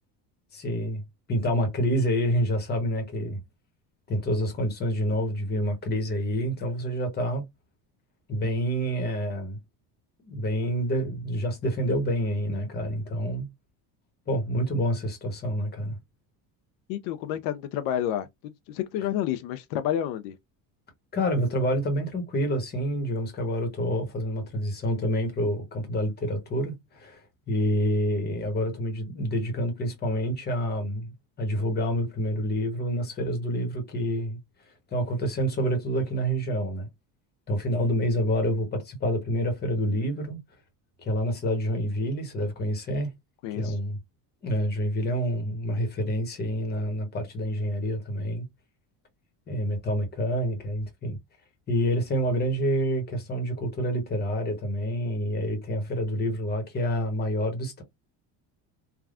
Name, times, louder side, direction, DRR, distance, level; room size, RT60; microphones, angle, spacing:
voice 1, 0.5-1.0 1.3-3.4 4.1-7.4 8.3-9.6 10.2-13.5 14.3-16.0 21.1-31.1 31.4-34.4 34.9-36.9 37.5-40.4 41.0-43.1 43.5-44.0 44.4-48.4 49.5-51.2 51.7-57.8, equal, 25° left, 1.0 m, -27 dB
voice 2, 16.9-20.3 43.4-43.7, left 11 dB, 75° left, 0.5 m, -30 dB
3.4 x 2.3 x 2.4 m
cardioid pair, 160°, 42 cm